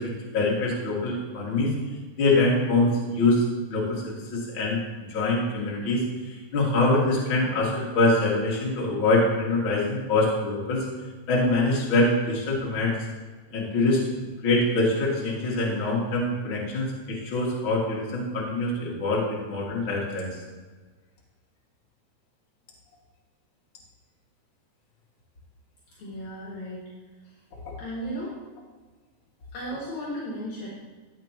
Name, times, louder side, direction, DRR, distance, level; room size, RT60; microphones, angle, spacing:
voice 1, 0.0-1.7 2.2-6.0 6.3-10.8 11.3-12.9 13.5-14.0 14.4-20.3, left 2 dB, 45° left, -3 dB, 2.7 m, -24 dB
voice 2, 26.0-26.8 27.8-28.3 29.5-30.7, equal, 70° left, -6 dB, 3.2 m, -34 dB
15.5 x 8.4 x 3.0 m, 1.4 s
omnidirectional pair, 3.5 m